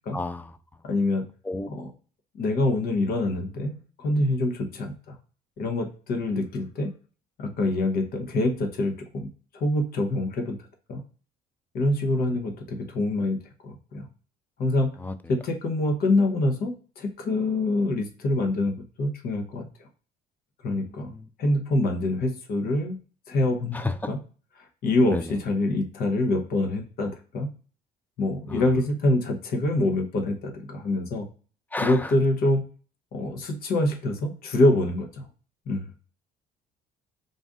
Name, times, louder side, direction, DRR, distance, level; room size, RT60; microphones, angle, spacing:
voice 1, 0.1-0.6 1.4-1.7 15.0-15.4 20.8-21.3 23.7-24.0 25.1-25.4 28.5-28.6 31.7-32.2, left 2 dB, 10° left, 12 dB, 0.4 m, -32 dB
voice 2, 0.8-1.3 1.7-1.9 2.3-5.2 5.6-6.9 7.4-9.3 9.5-10.6 10.9-11.0 11.7-14.1 14.6-15.0 15.4-19.9 20.6-21.1 21.4-23.0 23.3-24.2 24.6-27.5 28.2-31.3 31.8-32.6 33.1-35.3 35.7-35.9, left 2 dB, 65° left, 4 dB, 0.9 m, -25 dB
3.9 x 2.5 x 3.6 m, 0.39 s
cardioid pair, 110°, 17 cm